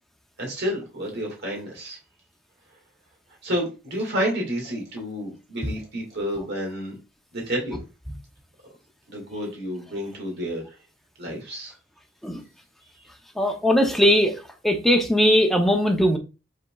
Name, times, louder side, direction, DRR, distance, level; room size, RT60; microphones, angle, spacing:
voice 1, 0.4-2.0 3.4-6.9 7.3-7.8 9.1-10.6 11.2-11.7, equal, 60° right, 1.8 m, -30 dB
voice 2, 13.4-14.3 14.6-16.2, equal, ahead, 0.6 m, -19 dB
5.2 x 3.8 x 2.3 m
head